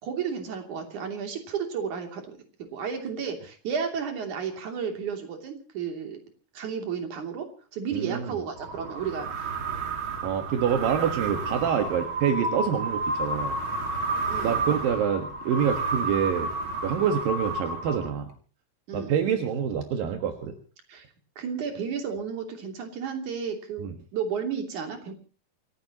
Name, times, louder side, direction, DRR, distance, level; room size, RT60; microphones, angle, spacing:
voice 1, 0.0-2.4 2.7-6.2 6.5-7.5 7.7-9.5 14.3-14.5 18.9-19.1 20.9-21.1 21.4-25.1, right 6 dB, 60° right, 4 dB, 4.3 m, -32 dB
voice 2, 7.9-8.4 10.2-13.6 14.4-16.5 16.8-18.3 18.9-20.5 23.8-23.9, right 8 dB, 80° right, 5 dB, 3.3 m, -26 dB
sound 1, 8.6-18.3, right 2 dB, 40° right, 3.2 m, -31 dB
28.0 x 16.0 x 3.0 m, 0.37 s
omnidirectional pair, 4.0 m